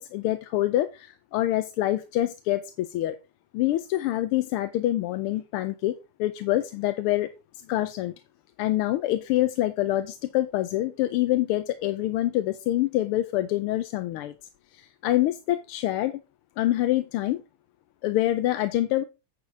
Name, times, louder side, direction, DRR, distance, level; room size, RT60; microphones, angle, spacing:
voice 1, 0.0-3.2 3.5-7.3 7.7-8.1 8.6-14.3 14.7-16.2 16.6-17.4 18.0-19.0, left 14 dB, 90° left, 11 dB, 1.5 m, -26 dB
9.5 x 4.8 x 4.8 m, 0.28 s
omnidirectional pair, 2.4 m